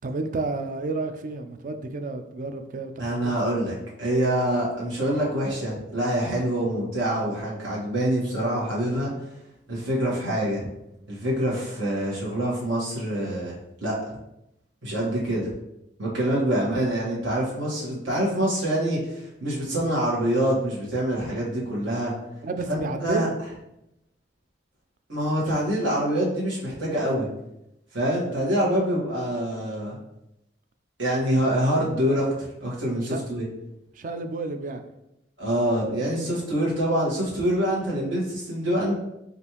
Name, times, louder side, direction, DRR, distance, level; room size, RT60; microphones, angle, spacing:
voice 1, 0.0-3.7 22.4-23.3 33.1-33.2 34.0-34.8, right 3 dB, 45° right, 7 dB, 0.4 m, -31 dB
voice 2, 3.0-9.1 9.7-10.7 11.1-13.6 13.8-14.0 14.8-15.5 16.0-22.1 22.7-23.3 25.1-27.3 27.9-30.0 31.0-33.4 35.4-38.9, right 1 dB, 80° right, -6 dB, 1.4 m, -25 dB
5.1 x 2.5 x 2.9 m, 0.86 s
head